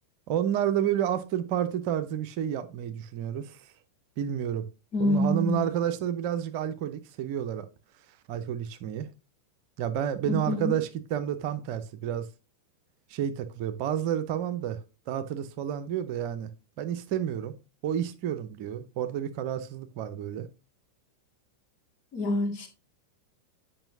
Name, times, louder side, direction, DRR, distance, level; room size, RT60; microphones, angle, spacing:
voice 1, 0.3-3.7 4.2-4.7 5.0-7.7 8.3-9.1 9.8-12.3 13.1-14.8 15.1-16.5 16.8-17.5 17.8-20.5, right 10 dB, 45° right, 0.7 m, -30 dB
voice 2, 4.9-5.7 10.3-10.8 22.1-22.7, left 1 dB, 40° left, 2.2 m, -27 dB
8.9 x 5.4 x 2.7 m
figure-of-eight pair, 90°, 0 cm